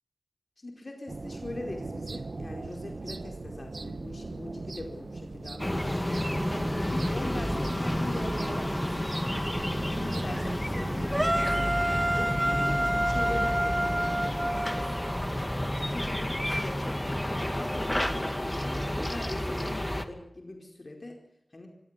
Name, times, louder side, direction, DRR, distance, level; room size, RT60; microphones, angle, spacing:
voice 1, 0.6-6.0 6.9-9.5 9.8-11.7 12.2-14.9 15.9-17.1 17.4-21.2 21.5-21.7, left 2 dB, 50° left, 2 dB, 4.7 m, -41 dB
sound 1, 1.1-11.1, right 3 dB, 70° right, 1.4 m, -39 dB
sound 2, 5.6-20.1, left 1 dB, 15° left, 2.2 m, -30 dB
sound 3, 11.1-15.2, right 1 dB, 20° right, 1.2 m, -28 dB
25.5 x 15.0 x 9.8 m, 0.86 s
wide cardioid pair, 55°, 0 cm